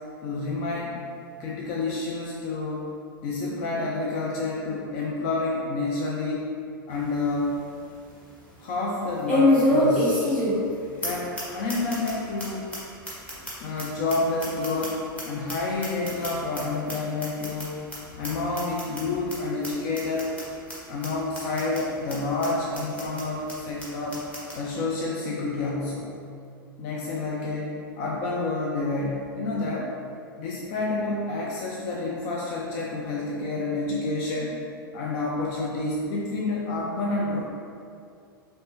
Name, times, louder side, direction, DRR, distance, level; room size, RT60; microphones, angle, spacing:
voice 1, 0.2-1.0 1.4-2.9 3.2-6.5 6.9-7.5 8.6-10.3 11.0-12.7 13.6-20.3 20.9-24.3 24.5-26.1 26.8-29.9 30.4-34.6 34.9-37.4, left 3 dB, 40° left, -3 dB, 0.5 m, -29 dB
sound 1, 6.9-7.0 7.5-7.6 9.3-10.7 11.0-11.1 11.4-11.5 11.7-12.1 12.4-12.5 12.7-12.8 13.1-15.2 15.5-16.6 16.9-17.0 17.2-17.6 17.9-18.0 18.2-18.3 18.6-19.0 19.3-19.4 19.6-19.7 20.0-20.4 20.7-20.8 21.0-21.1 21.3-21.8 22.1-22.2 22.4-22.5 22.7-23.2 23.5-23.6 23.8-23.9 24.1-24.6, left 1 dB, 10° left, 1.3 m, -25 dB
4.3 x 3.2 x 3.1 m, 2.4 s
figure-of-eight pair, 90°, 12 cm